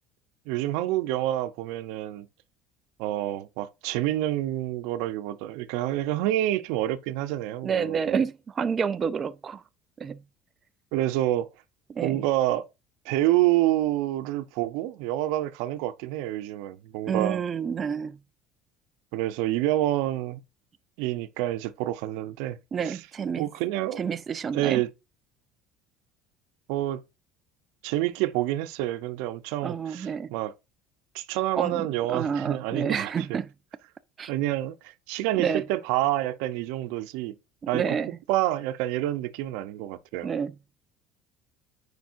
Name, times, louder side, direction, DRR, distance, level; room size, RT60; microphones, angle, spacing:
voice 1, 0.5-2.3 3.0-8.2 10.9-11.5 12.0-12.7 13.0-17.4 19.1-20.4 21.0-22.6 22.8-23.0 23.4-24.0 24.5-24.9 26.7-27.0 27.8-30.5 31.1-33.4 34.3-37.3 37.7-38.0 38.3-40.3, right 14 dB, 85° right, 0.7 m, -28 dB
voice 2, 7.6-9.6 10.0-10.2 11.9-12.2 17.1-18.2 22.7-23.5 24.0-24.8 29.6-30.3 31.5-33.5 34.2-34.3 35.4-35.6 37.7-38.1 40.2-40.5, right 6 dB, 30° right, 0.4 m, -29 dB
9.4 x 4.8 x 2.6 m
cardioid pair, 140°, 0 cm